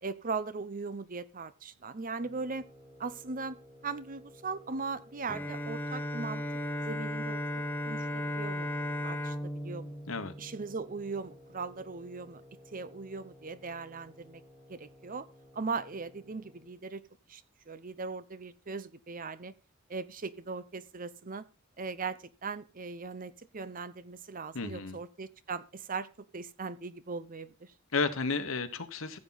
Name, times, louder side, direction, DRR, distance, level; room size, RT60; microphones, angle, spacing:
voice 1, 0.0-2.6 3.0-3.6 3.8-6.4 6.8-9.9 10.4-12.4 12.7-14.4 14.7-15.3 15.5-17.0 17.3-19.5 19.9-21.5 21.8-27.7, right 4 dB, 45° right, 0.8 m, -39 dB
sound 1, 2.2-16.8, left 1 dB, 25° right, 4.2 m, -56 dB
Bowed string instrument, 5.3-11.2, left 1 dB, 10° left, 0.9 m, -36 dB
voice 2, 24.5-25.0 27.9-29.2, left 4 dB, 85° left, 1.3 m, -32 dB
15.0 x 7.4 x 4.1 m
head